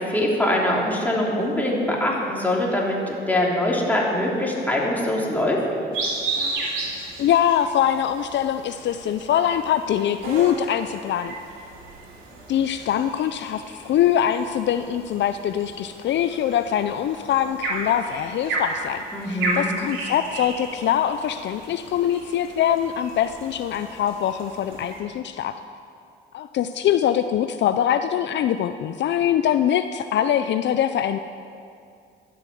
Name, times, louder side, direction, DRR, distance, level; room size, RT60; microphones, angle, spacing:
voice 1, 0.0-5.6 19.1-19.7, left 1 dB, 10° left, -3 dB, 3.0 m, -23 dB
sound 1, 5.9-25.0, right 2 dB, 90° right, 3.0 m, -34 dB
voice 2, 7.2-11.3 12.5-25.6 26.3-31.2, left 10 dB, 65° left, 10 dB, 0.5 m, -23 dB
11.5 x 8.5 x 7.7 m, 2.4 s
cardioid pair, 90°, 20 cm